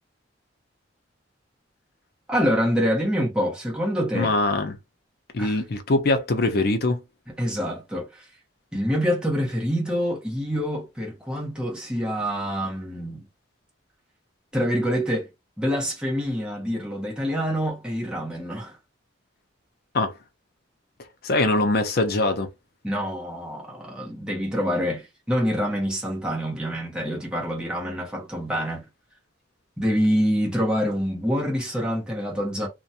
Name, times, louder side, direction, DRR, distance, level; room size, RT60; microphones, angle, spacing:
voice 1, 2.3-4.3 5.4-5.6 7.4-8.3 8.7-13.2 14.5-15.3 15.6-18.8 22.8-28.9 29.8-32.7, equal, 5° right, 0.9 m, -26 dB
voice 2, 4.1-4.8 5.3-7.0 19.9-20.1 21.2-22.5, left 2 dB, 55° left, 0.6 m, -22 dB
2.5 x 2.2 x 2.7 m
head